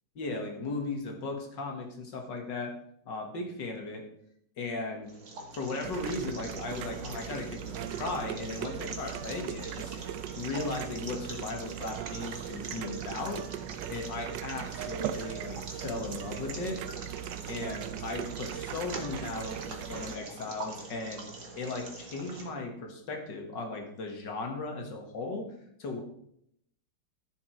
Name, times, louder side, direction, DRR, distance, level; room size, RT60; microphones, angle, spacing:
voice 1, 0.2-2.8 3.1-4.1 4.6-5.2 5.5-10.1 10.4-13.5 13.9-16.8 17.4-21.3 21.6-25.5 25.8-26.0, left 3 dB, 75° left, 3 dB, 2.4 m, -37 dB
sound 1, 5.0-22.5, right 3 dB, 45° right, 1.9 m, -45 dB
sound 2, 5.8-20.2, right 11 dB, 80° right, 1.3 m, -39 dB
13.0 x 7.1 x 4.6 m, 0.72 s
omnidirectional pair, 2.0 m